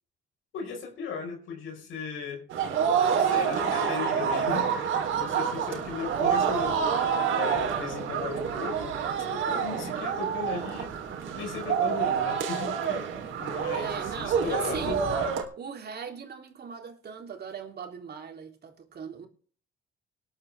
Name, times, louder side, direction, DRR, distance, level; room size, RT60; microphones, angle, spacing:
voice 1, 0.5-2.4 3.0-6.9 7.3-9.0 9.3-11.0 11.3-15.1, left 5 dB, 85° left, 4.8 m, -36 dB
sound 1, 2.5-15.4, right 7 dB, 80° right, 3.5 m, -28 dB
voice 2, 13.7-15.0 15.6-19.3, right 6 dB, 55° right, 3.3 m, -39 dB
19.0 x 11.5 x 3.5 m
cardioid pair, 90°, 20 cm